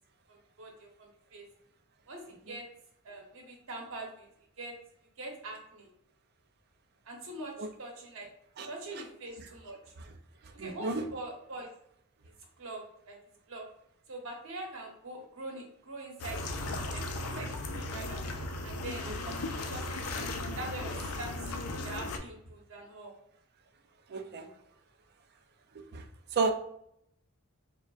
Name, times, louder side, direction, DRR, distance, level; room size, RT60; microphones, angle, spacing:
voice 1, 0.3-1.4 2.1-2.7 3.0-4.3 4.6-4.7 5.2-5.9 7.0-8.3 8.7-9.9 10.5-11.7 12.6-13.2 13.5-13.7 14.1-18.2 18.6-19.1 19.7-20.1 20.6-23.1, right 2 dB, 65° right, 1 dB, 1.0 m, -43 dB
voice 2, 10.6-11.0 24.1-24.5 25.7-26.0 26.3-26.5, right 3 dB, 50° right, 6 dB, 0.4 m, -32 dB
sound 1, 16.2-22.2, left 2 dB, 80° left, 0.4 m, -36 dB
4.8 x 2.3 x 2.3 m, 0.72 s
head